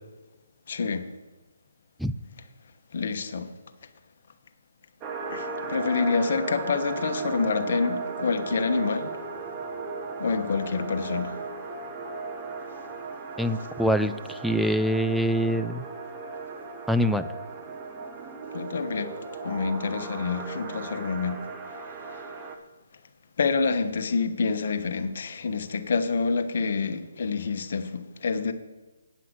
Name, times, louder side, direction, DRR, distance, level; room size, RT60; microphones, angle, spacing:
voice 1, 0.7-1.1 2.9-3.5 5.3-9.1 10.2-11.4 18.5-19.1 19.4-21.4 23.4-28.5, left 4 dB, 55° left, 1.1 m, -27 dB
sound 1, 5.0-22.6, right 4 dB, 20° right, 1.0 m, -36 dB
voice 2, 13.4-15.9 16.9-17.3, equal, ahead, 0.3 m, -24 dB
9.1 x 5.8 x 8.0 m
hypercardioid pair, 150°, 0 cm